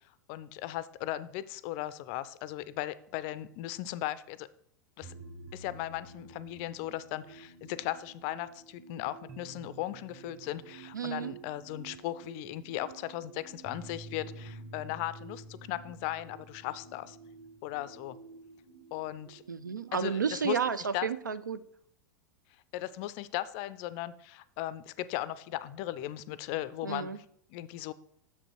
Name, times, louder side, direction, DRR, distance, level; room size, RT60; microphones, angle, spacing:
voice 1, 0.3-4.5 5.0-5.1 5.5-17.2 17.6-18.2 18.9-19.4 19.9-20.6 20.9-21.1 22.7-27.2 27.5-27.9, left 14 dB, 45° left, 17 dB, 0.4 m, -37 dB
sound 1, 5.0-20.6, right 3 dB, 25° right, 1.1 m, -50 dB
voice 2, 10.9-11.3 19.5-21.6 26.8-27.2, right 6 dB, 80° right, 15 dB, 0.4 m, -32 dB
6.9 x 5.2 x 4.3 m, 0.69 s
figure-of-eight pair, 90°, 10 cm